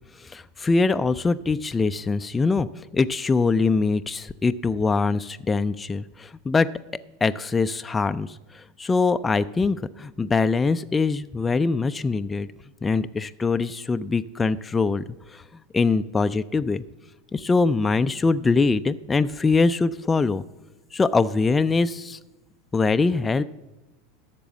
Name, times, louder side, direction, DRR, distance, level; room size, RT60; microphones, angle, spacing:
voice 1, 0.2-2.7 2.9-6.7 7.2-12.5 12.8-15.0 15.3-15.4 15.7-16.8 17.3-20.4 20.9-22.2 22.7-23.4, left 4 dB, 15° left, 11 dB, 0.4 m, -23 dB
12.0 x 6.8 x 7.4 m, 1.0 s
figure-of-eight pair, 80°, 0 cm